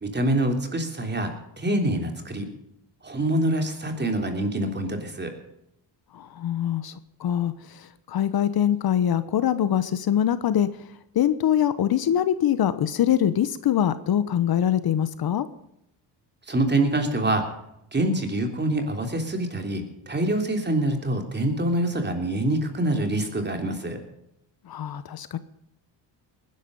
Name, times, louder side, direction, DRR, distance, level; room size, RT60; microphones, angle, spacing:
voice 1, 0.0-2.5 3.0-5.3 16.5-17.4 17.9-24.0, right 1 dB, 25° right, 4 dB, 3.4 m, -25 dB
voice 2, 6.1-10.7 11.1-15.5 24.6-25.4, left 10 dB, 55° left, 13 dB, 1.1 m, -23 dB
20.0 x 11.0 x 5.4 m, 0.79 s
cardioid pair, 95°, 43 cm